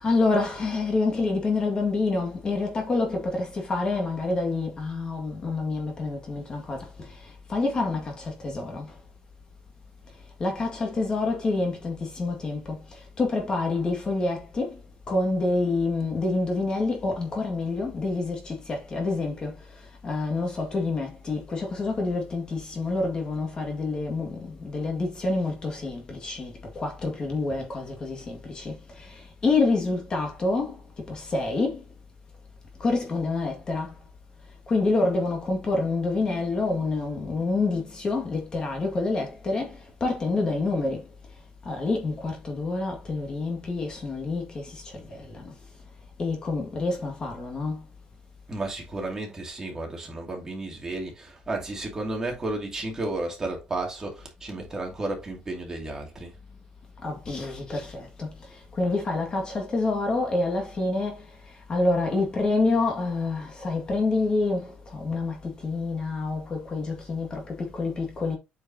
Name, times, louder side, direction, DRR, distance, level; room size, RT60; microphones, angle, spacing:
voice 1, 0.0-6.8 7.5-8.9 10.4-12.8 13.2-14.7 15.1-19.5 20.0-28.8 29.4-30.7 31.1-31.8 32.8-33.9 34.7-39.7 40.0-41.0 41.7-44.6 45.1-45.4 46.2-47.8 57.0-58.3 58.8-61.2 61.7-64.7 65.0-68.4, left 3 dB, 30° left, 2.0 m, -27 dB
voice 2, 48.5-56.4, right 2 dB, 20° right, 2.5 m, -33 dB
8.6 x 5.2 x 2.8 m
cardioid pair, 155°, 3 cm